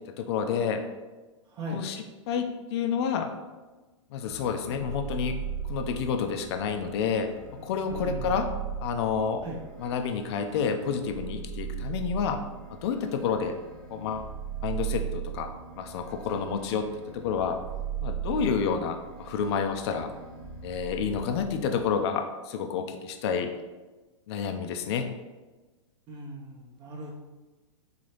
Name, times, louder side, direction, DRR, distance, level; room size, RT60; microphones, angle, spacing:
voice 1, 0.2-0.8 1.7-3.3 4.1-5.4 5.7-7.3 7.6-8.5 8.8-9.4 9.8-12.4 12.7-13.6 13.9-14.3 14.6-15.5 15.8-16.9 17.1-17.6 18.0-20.1 20.6-23.5 24.3-25.1, left 6 dB, 55° left, 7 dB, 0.4 m, -29 dB
voice 2, 1.5-1.8 7.9-8.4 9.4-9.6 26.1-27.1, right 1 dB, 30° right, -1 dB, 0.6 m, -38 dB
sound 1, 4.2-22.0, right 8 dB, 5° left, 0.8 m, -38 dB
4.0 x 2.8 x 3.2 m, 1.2 s
hypercardioid pair, 125°, 16 cm